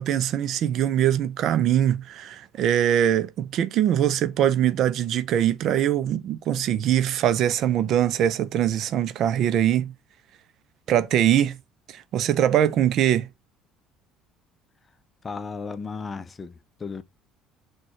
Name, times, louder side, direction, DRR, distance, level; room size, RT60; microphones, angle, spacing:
voice 1, 0.0-9.9 10.9-11.6 11.9-13.3, right 10 dB, 60° right, 0.4 m, -22 dB
voice 2, 15.2-17.0, left 4 dB, 30° left, 0.5 m, -35 dB
6.0 x 2.3 x 2.8 m
hypercardioid pair, 70°, 0 cm